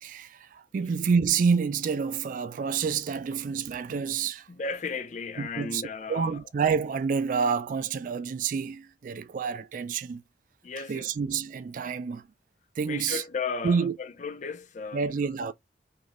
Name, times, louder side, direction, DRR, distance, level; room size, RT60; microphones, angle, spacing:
voice 1, 0.0-4.5 5.4-5.8 6.1-10.2 10.8-12.3 12.8-13.2 13.6-14.0 14.9-15.5, right 6 dB, 50° right, 0.3 m, -28 dB
voice 2, 4.5-6.3 10.6-11.1 12.9-15.0, left 4 dB, 45° left, 0.4 m, -35 dB
3.1 x 2.4 x 2.6 m
head